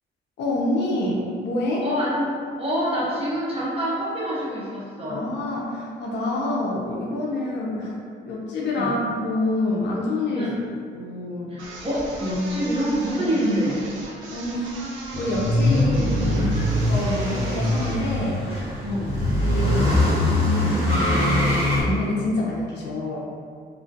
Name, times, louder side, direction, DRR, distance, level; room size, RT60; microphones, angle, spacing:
voice 1, 0.4-1.8 5.1-7.9 8.2-10.5 10.9-11.5 13.3-13.4 14.3-14.8 15.2-16.6 16.9-18.4 19.4-20.0 20.8-23.2, left 2 dB, 60° left, -4 dB, 0.5 m, -27 dB
voice 2, 1.8-5.3 8.7-8.9 10.3-10.6 11.5-13.8 18.8-19.2, equal, 30° right, -7 dB, 0.7 m, -26 dB
sound 1, 11.6-18.1, right 2 dB, 75° right, 0.5 m, -38 dB
sound 2, 15.1-21.8, left 1 dB, 25° left, 1.2 m, -22 dB
2.3 x 2.2 x 2.6 m, 2.3 s
cardioid pair, 90°, 20 cm